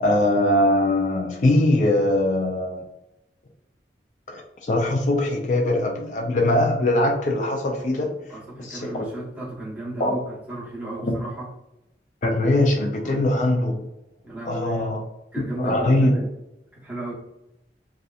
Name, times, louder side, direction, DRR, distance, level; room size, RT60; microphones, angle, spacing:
voice 1, 0.0-2.9 4.3-8.1 8.6-9.1 10.0-10.2 11.0-11.1 12.2-13.8 14.5-15.0 15.4-16.1, left 1 dB, 45° left, 1 dB, 0.3 m, -21 dB
voice 2, 8.3-11.5 13.0-13.2 14.2-14.9 15.3-16.2 16.7-17.1, right 1 dB, 10° right, -7 dB, 0.8 m, -34 dB
2.7 x 2.3 x 2.3 m, 0.91 s
head